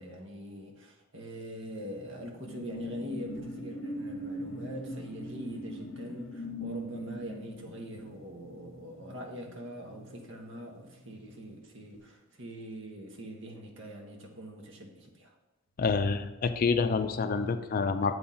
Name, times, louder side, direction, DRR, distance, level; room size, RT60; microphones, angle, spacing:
voice 1, 0.0-15.3, equal, 65° right, 1 dB, 1.1 m, -43 dB
sound 1, 1.6-10.6 10.9-11.2, equal, 70° left, 0.7 m, -41 dB
voice 2, 15.8-18.1, left 4 dB, 45° left, 9 dB, 0.4 m, -27 dB
7.7 x 3.9 x 4.2 m, 1.1 s
head